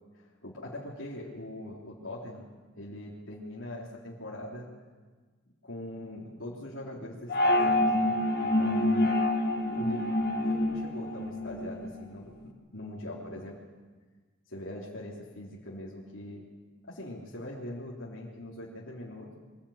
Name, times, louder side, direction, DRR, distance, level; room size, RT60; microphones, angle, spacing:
voice 1, 0.1-2.5 2.7-4.7 5.6-9.1 9.6-10.0 10.4-13.6 14.5-16.4 16.9-19.4, left 1 dB, 75° left, -5 dB, 3.6 m, -42 dB
sound 1, 7.3-11.9, left 1 dB, 55° left, 2.0 m, -27 dB
24.0 x 15.5 x 8.8 m, 1.4 s
head